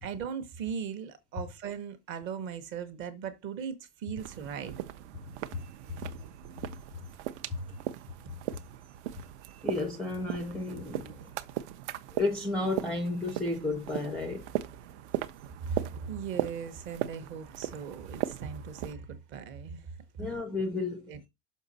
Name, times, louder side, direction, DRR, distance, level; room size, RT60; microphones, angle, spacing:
voice 1, 0.0-4.9 15.7-19.9 20.2-20.3 21.1-21.3, right 7 dB, 25° right, 0.9 m, -38 dB
sound 1, 4.2-18.9, right 13 dB, 55° right, 0.7 m, -38 dB
voice 2, 7.5-7.8 9.4-11.3 12.1-14.4 20.2-21.1, left 2 dB, ahead, 0.5 m, -32 dB
6.4 x 5.4 x 4.0 m
supercardioid pair, 175°, 42 cm